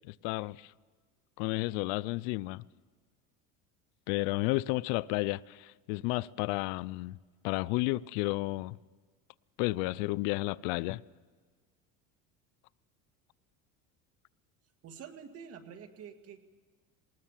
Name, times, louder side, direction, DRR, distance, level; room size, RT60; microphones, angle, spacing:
voice 1, 0.1-0.7 1.4-2.6 4.1-7.2 7.4-8.8 9.6-11.0, left 21 dB, 75° left, 0.5 m, -32 dB
voice 2, 14.8-16.4, right 7 dB, 45° right, 2.1 m, -47 dB
20.0 x 20.0 x 7.4 m
cardioid pair, 135°, 34 cm